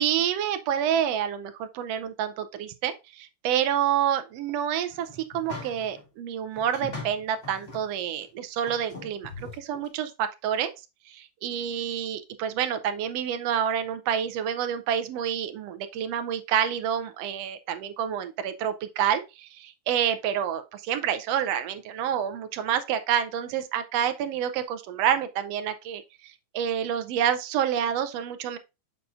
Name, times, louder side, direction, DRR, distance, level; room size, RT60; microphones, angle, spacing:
voice 1, 0.0-10.7 11.1-28.6, right 9 dB, 80° right, 1.5 m, -28 dB
sound 1, 4.9-6.0 6.5-7.9 8.2-8.3 8.7-9.9, left 3 dB, 20° left, 2.3 m, -41 dB
6.9 x 6.7 x 2.5 m
omnidirectional pair, 3.5 m